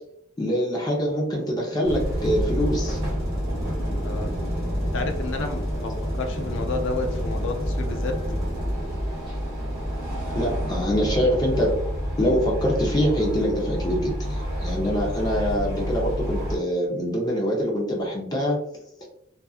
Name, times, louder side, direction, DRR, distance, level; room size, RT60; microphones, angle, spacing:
voice 1, 0.4-3.0 10.3-11.7 12.2-18.6, equal, 20° left, -2 dB, 0.6 m, -24 dB
sound 1, 1.8-16.6, equal, 30° right, 1.2 m, -28 dB
voice 2, 4.9-8.1, left 3 dB, 65° left, 4 dB, 0.4 m, -31 dB
2.5 x 2.5 x 2.3 m, 0.71 s
head